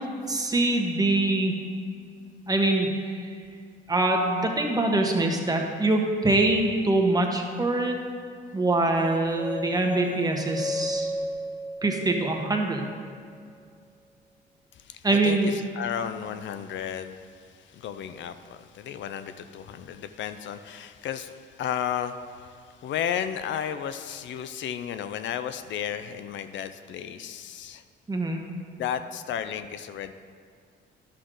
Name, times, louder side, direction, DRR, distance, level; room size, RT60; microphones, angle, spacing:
voice 1, 0.3-1.5 2.5-3.3 3.9-7.9 8.5-11.1 11.8-12.8 15.0-15.5 28.1-28.4, right 2 dB, 20° right, 2 dB, 1.2 m, -24 dB
sound 1, 9.1-13.2, left 1 dB, 10° left, 0.5 m, -34 dB
voice 2, 14.7-27.8 28.8-30.1, left 9 dB, 70° left, 11 dB, 0.5 m, -33 dB
11.5 x 6.5 x 3.8 m, 2.2 s
cardioid pair, 90°, 20 cm